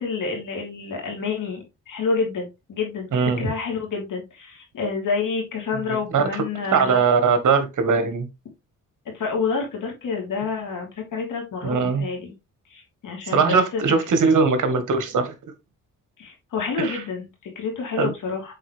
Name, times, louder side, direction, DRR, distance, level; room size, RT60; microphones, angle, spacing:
voice 1, 0.0-3.1 3.4-7.0 9.1-12.3 12.7-13.8 16.2-18.5, left 4 dB, 75° left, 3.1 m, -28 dB
voice 2, 3.1-3.5 6.1-6.4 6.7-8.3 11.6-12.1 13.3-15.3 16.8-17.0 18.0-18.1, right 5 dB, 65° right, 1.6 m, -20 dB
7.5 x 4.1 x 3.3 m
cardioid pair, 90°, 32 cm